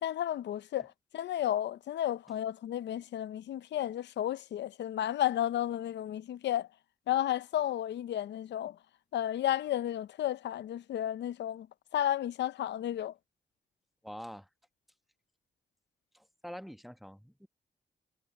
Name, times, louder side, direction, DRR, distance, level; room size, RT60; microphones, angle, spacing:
voice 1, 0.0-6.7 7.1-8.8 9.1-11.7 11.9-13.1, left 11 dB, 80° left, 0.6 m, -32 dB
voice 2, 14.0-14.5 16.1-17.5, equal, ahead, 1.1 m, -45 dB
supercardioid pair, 50°, 18 cm